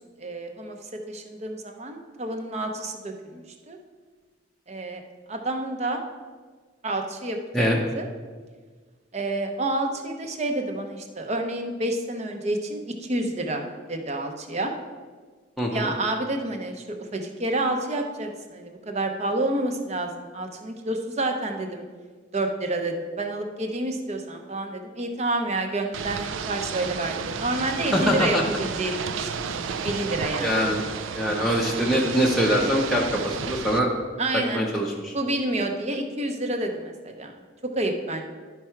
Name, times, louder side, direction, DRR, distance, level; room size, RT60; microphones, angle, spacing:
voice 1, 0.2-3.8 4.7-5.0 5.3-6.0 6.8-8.1 9.1-14.7 15.7-16.8 17.1-21.8 22.3-30.6 34.2-34.7 35.1-37.3 37.8-38.2, right 2 dB, 35° right, 5 dB, 0.7 m, -29 dB
voice 2, 15.6-15.9 27.9-28.4 30.4-30.8 31.1-33.9 34.5-35.1, equal, ahead, -3 dB, 0.6 m, -23 dB
Ocean / Boat Water vehicle, 25.9-33.8, right 6 dB, 80° right, 0.4 m, -32 dB
11.0 x 4.7 x 4.4 m, 1.5 s
head